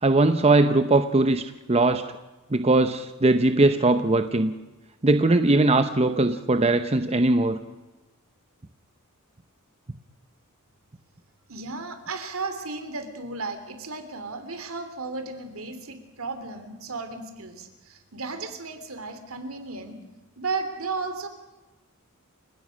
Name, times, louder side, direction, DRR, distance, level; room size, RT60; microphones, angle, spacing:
voice 1, 0.0-2.0 2.5-4.5 5.0-7.6, right 2 dB, 30° right, 9 dB, 0.8 m, -20 dB
voice 2, 11.5-20.0 20.4-21.3, right 3 dB, 70° right, 8 dB, 3.0 m, -34 dB
30.0 x 17.0 x 6.4 m, 1.1 s
head